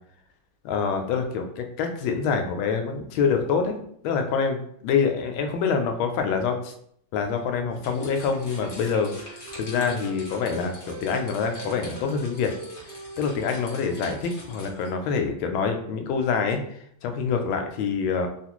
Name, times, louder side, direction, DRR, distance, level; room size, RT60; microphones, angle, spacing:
voice 1, 0.6-3.8 4.0-6.7 7.1-12.5 13.2-18.3, left 5 dB, 80° left, 5 dB, 1.3 m, -26 dB
sound 1, 7.7-14.9, left 2 dB, 60° left, 0.5 m, -45 dB
Wind instrument woodwind instrument, 7.7-11.1 11.4-15.2, right 3 dB, 90° right, 1.5 m, -44 dB
3.6 x 2.4 x 2.9 m, 0.68 s
omnidirectional pair, 2.3 m